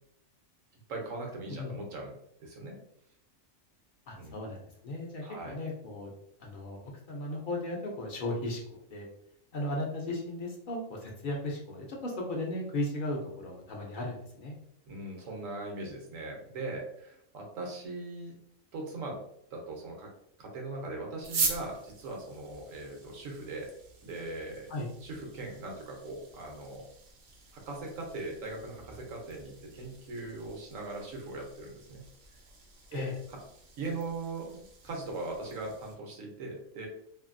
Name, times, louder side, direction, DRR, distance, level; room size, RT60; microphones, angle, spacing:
voice 1, 0.9-2.1 2.4-2.7 4.1-4.3 5.2-5.6 14.9-18.4 18.7-19.2 19.5-20.1 20.4-23.7 24.0-24.7 25.0-26.8 27.5-32.0 32.9-33.4 33.8-36.9, right 2 dB, 80° right, 1 dB, 1.1 m, -40 dB
voice 2, 4.1-6.1 6.4-9.1 9.5-14.5 24.7-24.9 32.9-33.1, left 1 dB, 55° left, -1 dB, 0.6 m, -36 dB
sound 1, 21.2-35.9, right 4 dB, 60° right, 0.8 m, -42 dB
2.7 x 2.6 x 2.5 m, 0.72 s
omnidirectional pair, 1.4 m